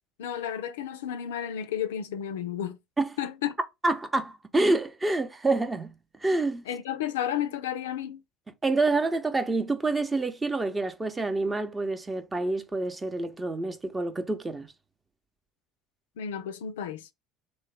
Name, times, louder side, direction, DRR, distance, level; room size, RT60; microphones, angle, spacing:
voice 1, 0.2-2.8 3.2-3.5 6.7-8.2 16.2-17.1, left 9 dB, 75° left, 0.4 m, -32 dB
voice 2, 3.8-6.6 8.6-14.7, right 2 dB, 20° right, 0.7 m, -27 dB
3.1 x 2.1 x 3.2 m
hypercardioid pair, 65°, 0 cm